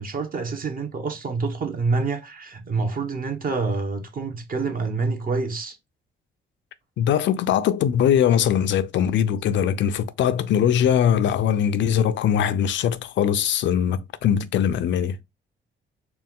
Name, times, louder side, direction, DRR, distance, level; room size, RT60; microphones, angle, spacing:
voice 1, 0.0-5.8, right 4 dB, 45° right, 1.0 m, -27 dB
voice 2, 7.0-15.2, left 9 dB, 70° left, 0.5 m, -21 dB
4.3 x 2.3 x 3.6 m
cardioid pair, 90°, 20 cm